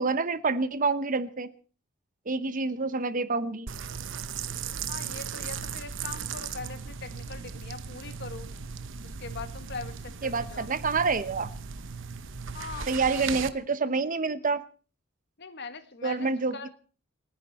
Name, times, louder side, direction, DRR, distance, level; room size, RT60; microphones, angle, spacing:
voice 1, 0.0-1.5 2.3-3.7 10.2-11.5 12.9-14.6 16.0-16.7, right 4 dB, 40° right, 14 dB, 0.9 m, -27 dB
sound 1, 3.7-13.5, right 6 dB, 65° right, 1.0 m, -37 dB
voice 2, 4.9-8.5 9.0-10.7 12.5-13.4 13.8-13.9 15.4-16.7, left 4 dB, 55° left, 9 dB, 1.8 m, -42 dB
29.5 x 10.0 x 4.2 m, 0.39 s
head